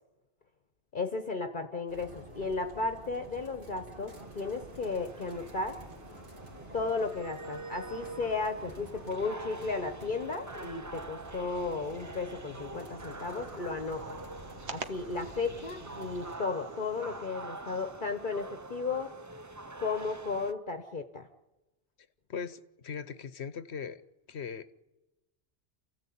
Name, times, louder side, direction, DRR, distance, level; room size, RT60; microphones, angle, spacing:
voice 1, 0.9-5.8 6.7-14.2 14.7-19.1 19.8-21.3, left 4 dB, 45° left, 7 dB, 1.2 m, -34 dB
sound 1, 1.9-16.3, right 1 dB, 50° right, 3.3 m, -49 dB
sound 2, 4.1-20.5, right 2 dB, 20° right, 0.6 m, -46 dB
sound 3, 11.8-17.3, right 5 dB, 75° right, 1.5 m, -49 dB
voice 2, 22.3-24.0 24.3-24.7, left 6 dB, 75° left, 14 dB, 1.2 m, -39 dB
28.0 x 15.5 x 8.6 m, 1.1 s
omnidirectional pair, 1.1 m